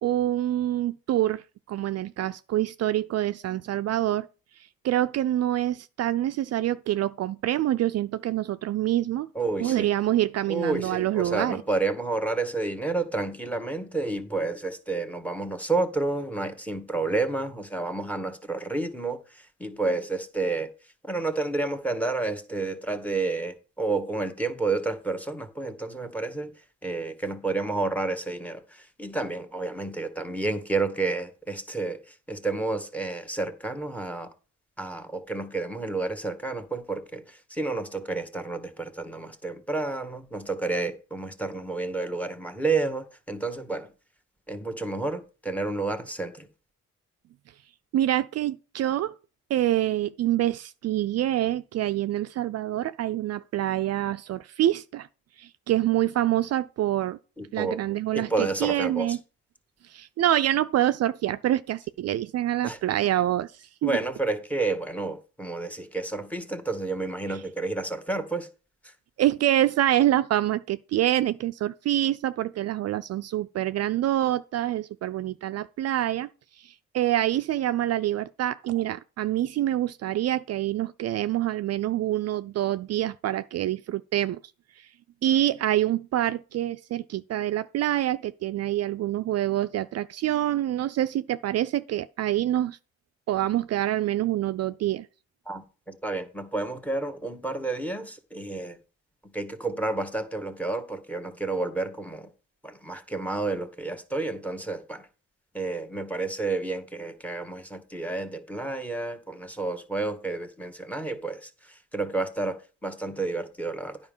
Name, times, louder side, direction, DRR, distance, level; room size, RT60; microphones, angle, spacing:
voice 1, 0.0-4.3 4.8-9.3 9.6-11.6 47.9-49.2 49.5-55.1 55.4-57.2 57.5-59.2 59.8-63.9 69.2-76.3 76.6-84.4 84.8-84.9 85.2-92.8 93.3-95.1, right 13 dB, 55° right, 0.4 m, -26 dB
voice 2, 9.3-9.9 10.5-20.7 21.0-26.5 26.8-34.3 34.8-43.9 44.5-46.5 57.4-57.8 58.1-59.2 62.6-62.8 63.8-68.5 95.5-98.8 99.3-102.3 102.6-105.1 105.5-114.0, right 3 dB, 5° left, 1.4 m, -30 dB
9.7 x 5.1 x 5.4 m
cardioid pair, 90°, 30 cm